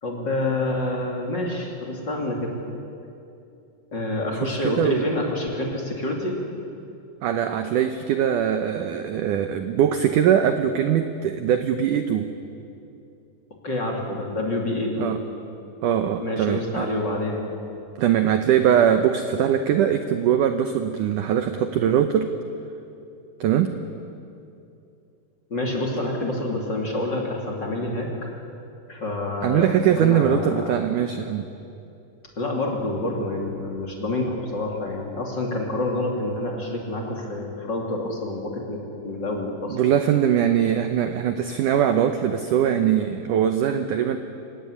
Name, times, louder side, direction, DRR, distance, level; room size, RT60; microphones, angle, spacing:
voice 1, 0.0-2.5 3.9-6.4 13.6-15.1 16.2-17.4 25.5-28.3 28.9-29.7 30.0-30.7 32.4-39.8, left 1 dB, 30° left, -1 dB, 2.9 m, -27 dB
voice 2, 7.2-12.3 15.0-15.2 15.8-16.9 18.0-22.3 23.4-23.7 29.4-31.5 39.7-44.2, right 9 dB, 75° right, 8 dB, 1.9 m, -21 dB
28.5 x 16.5 x 10.0 m, 2.7 s
omnidirectional pair, 4.8 m